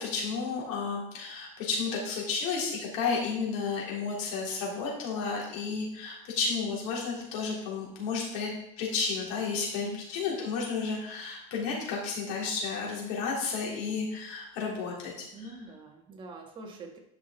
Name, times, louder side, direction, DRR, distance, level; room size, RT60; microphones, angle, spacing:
voice 1, 0.0-8.5 8.8-15.3, left 5 dB, 70° left, -3 dB, 3.5 m, -32 dB
voice 2, 15.3-17.0, right 1 dB, 30° right, 3 dB, 1.4 m, -45 dB
11.0 x 5.9 x 3.9 m, 0.76 s
cardioid pair, 150°, 17 cm